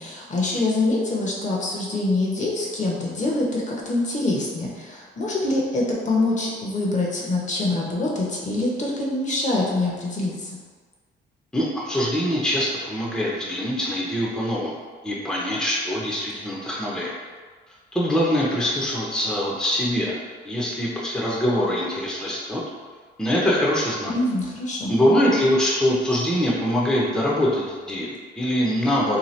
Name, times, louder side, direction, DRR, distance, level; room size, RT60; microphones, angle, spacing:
voice 1, 0.0-10.5 24.1-25.0, left 2 dB, 40° left, -3 dB, 0.7 m, -25 dB
voice 2, 11.5-14.7 15.0-17.1 17.9-20.2 20.4-22.6 23.2-24.1 24.9-29.2, equal, 5° left, -5 dB, 0.6 m, -23 dB
2.8 x 2.2 x 3.1 m, 1.5 s
cardioid pair, 90°, 20 cm